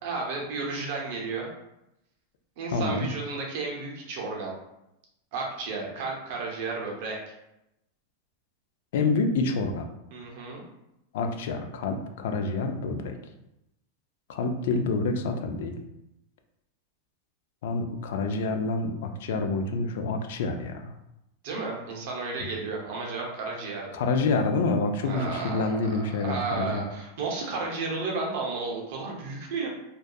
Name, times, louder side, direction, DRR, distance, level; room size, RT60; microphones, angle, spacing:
voice 1, 0.0-1.5 2.6-4.5 5.3-7.2 10.1-10.6 21.4-23.9 25.0-29.7, right 3 dB, 45° right, -1 dB, 0.6 m, -33 dB
voice 2, 2.7-3.1 8.9-9.9 11.1-13.2 14.3-15.7 17.6-20.9 22.4-22.5 23.9-26.9, left 3 dB, 60° left, 5 dB, 0.3 m, -27 dB
2.6 x 2.2 x 2.2 m, 0.86 s
supercardioid pair, 170°, 0 cm